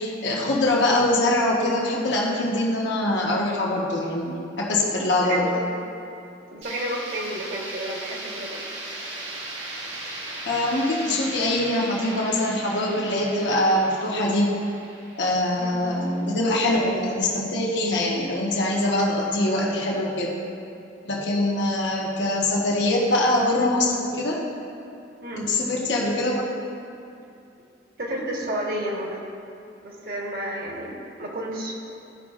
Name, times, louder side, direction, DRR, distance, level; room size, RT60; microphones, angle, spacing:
voice 1, 0.0-5.5 10.5-14.6 15.2-20.3 21.0-24.4 25.4-26.4, left 1 dB, 70° left, -4 dB, 1.1 m, -23 dB
voice 2, 5.1-5.7 6.5-8.6 15.6-15.8 25.2-25.5 25.9-26.0 28.0-29.2 29.8-31.7, right 1 dB, 55° right, -2 dB, 1.2 m, -31 dB
sound 1, 6.6-16.4, right 2 dB, 85° right, 1.5 m, -37 dB
13.5 x 5.2 x 2.4 m, 2.6 s
head